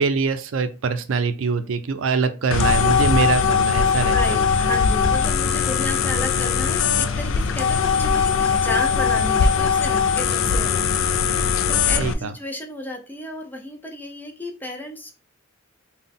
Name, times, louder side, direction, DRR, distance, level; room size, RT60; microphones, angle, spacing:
voice 1, 0.0-4.5 12.0-12.3, right 5 dB, 85° right, 10 dB, 0.5 m, -23 dB
sound 1, 2.5-12.1, left 6 dB, 75° left, 0.3 m, -20 dB
voice 2, 4.1-15.2, left 1 dB, 10° left, 2 dB, 0.6 m, -33 dB
3.8 x 2.2 x 3.6 m, 0.33 s
head